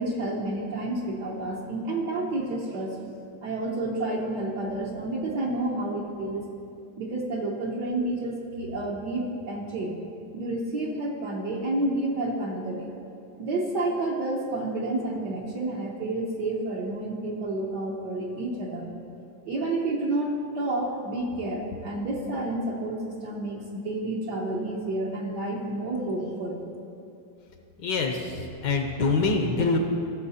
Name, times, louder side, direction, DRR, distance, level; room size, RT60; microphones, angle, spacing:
voice 1, 0.0-3.0 3.4-6.5 7.0-9.9 10.3-12.9 13.4-18.9 19.4-26.6, right 2 dB, 60° right, -3 dB, 1.6 m, -30 dB
voice 2, 27.8-29.8, left 3 dB, 65° left, 4 dB, 1.4 m, -25 dB
16.0 x 7.2 x 4.2 m, 2.7 s
omnidirectional pair, 2.2 m